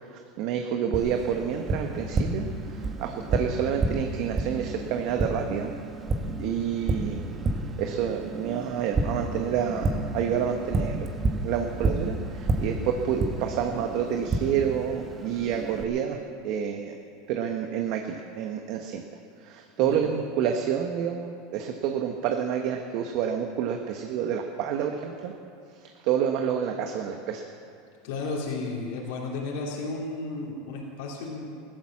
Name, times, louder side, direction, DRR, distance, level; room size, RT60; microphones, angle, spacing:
voice 1, 0.1-5.7 6.4-7.3 7.8-11.1 11.4-17.0 17.3-19.0 19.4-25.3 26.0-27.4, right 8 dB, 55° right, 4 dB, 1.3 m, -28 dB
Tap, 0.9-15.8, right 2 dB, 25° right, 1.6 m, -31 dB
voice 2, 28.0-31.5, left 3 dB, 70° left, -3 dB, 2.9 m, -33 dB
15.5 x 12.5 x 7.3 m, 2.5 s
supercardioid pair, 120°, 0 cm